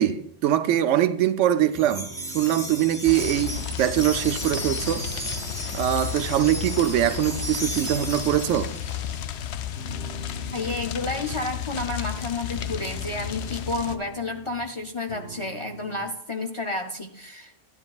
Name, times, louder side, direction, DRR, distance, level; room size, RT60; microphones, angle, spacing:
voice 1, 0.0-2.1 2.3-5.1 5.7-8.7, right 11 dB, 85° right, 0.9 m, -23 dB
sound 1, 1.7-6.6 7.0-9.3 9.8-11.9 12.4-14.8 15.1-16.0, right 3 dB, 85° left, 2.5 m, -44 dB
Wind chime, 1.7-9.2, equal, 5° left, 0.8 m, -35 dB
sound 2, 3.0-14.0, left 10 dB, 70° left, 0.8 m, -33 dB
voice 2, 10.5-17.5, left 3 dB, 40° left, 0.4 m, -31 dB
12.5 x 10.0 x 2.3 m
omnidirectional pair, 1.2 m